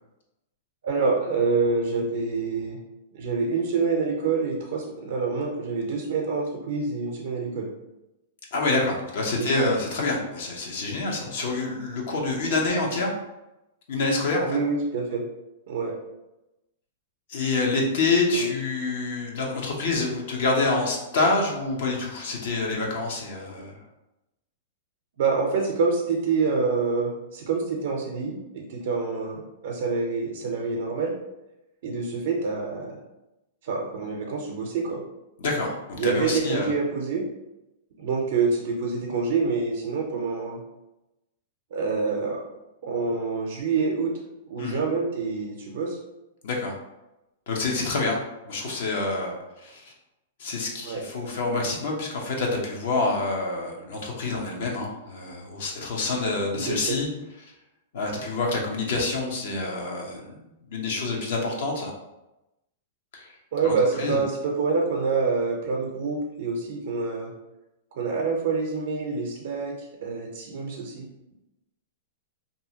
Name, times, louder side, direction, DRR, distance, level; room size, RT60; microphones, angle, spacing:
voice 1, 0.8-2.8 3.1-7.7 9.4-9.7 14.4-15.2 15.7-15.9 18.3-18.5 25.2-31.1 31.8-33.0 33.6-35.0 35.9-37.2 38.0-40.6 41.7-42.4 42.8-44.1 44.5-46.0 50.8-51.0 56.5-57.0 63.5-67.3 67.9-71.0, right 4 dB, 70° right, -1 dB, 0.5 m, -26 dB
voice 2, 8.5-13.1 13.9-14.6 17.3-23.8 35.4-35.7 36.0-36.7 44.6-44.8 46.4-46.7 47.5-48.2 48.5-49.8 50.4-57.1 57.9-60.4 60.7-61.9 63.1-63.3 63.6-64.2, left 3 dB, 65° left, -1 dB, 0.7 m, -27 dB
2.6 x 2.4 x 2.7 m, 0.94 s
hypercardioid pair, 115°, 0 cm